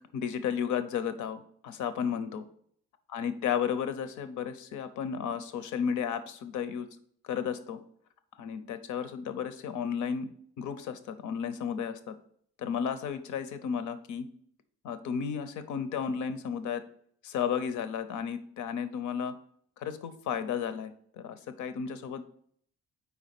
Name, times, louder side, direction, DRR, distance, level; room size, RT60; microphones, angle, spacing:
voice 1, 0.1-2.4 3.1-6.9 7.2-7.8 8.4-10.3 10.6-12.1 12.6-14.3 14.8-16.8 17.2-19.3 19.8-22.4, left 7 dB, 75° left, 11 dB, 0.7 m, -33 dB
4.7 x 4.2 x 5.8 m, 0.62 s
cardioid pair, 90°, 30 cm